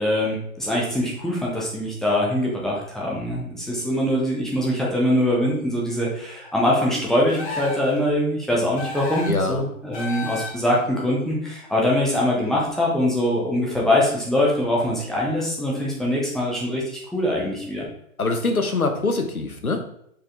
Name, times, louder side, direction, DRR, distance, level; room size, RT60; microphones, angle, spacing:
voice 1, 0.0-16.8 17.1-17.8, left 1 dB, ahead, -5 dB, 0.4 m, -23 dB
sound 1, 7.3-8.0 8.8-9.5 9.9-10.8, left 3 dB, 35° left, 1.6 m, -32 dB
voice 2, 9.3-9.6 18.2-19.8, left 3 dB, 85° left, 5 dB, 1.3 m, -23 dB
6.7 x 4.9 x 3.7 m, 0.73 s
figure-of-eight pair, 120°, 42 cm